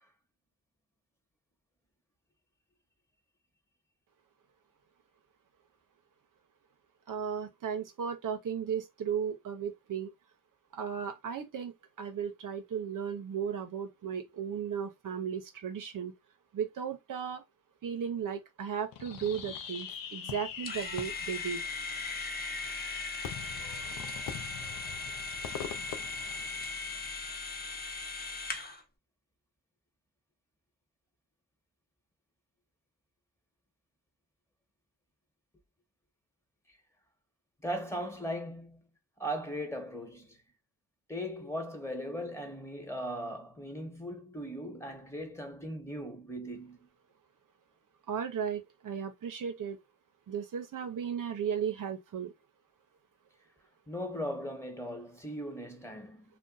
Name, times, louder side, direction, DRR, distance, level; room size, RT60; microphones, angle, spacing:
voice 1, 7.1-10.1 10.7-16.1 16.5-17.4 17.8-21.6 48.1-49.8 50.3-52.3, right 7 dB, 70° right, 0.7 m, -35 dB
Fireworks, 18.9-27.1, left 8 dB, 90° left, 0.5 m, -43 dB
sound 1, 20.7-28.8, left 3 dB, 30° left, 0.7 m, -38 dB
voice 2, 37.6-38.8 39.2-40.4 41.1-46.9 53.9-56.2, equal, 10° left, 1.3 m, -38 dB
2.5 x 2.1 x 3.9 m
cardioid pair, 55°, 33 cm